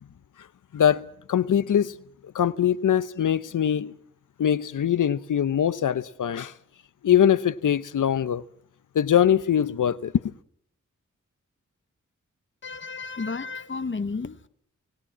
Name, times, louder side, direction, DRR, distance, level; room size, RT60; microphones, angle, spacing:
voice 1, 0.7-1.9 2.3-3.9 4.4-6.5 7.0-8.4 8.9-10.3, left 9 dB, 80° left, 0.9 m, -22 dB
voice 2, 12.6-14.5, left 4 dB, 40° left, 1.1 m, -32 dB
29.0 x 17.0 x 7.4 m
cardioid pair, 55°, 31 cm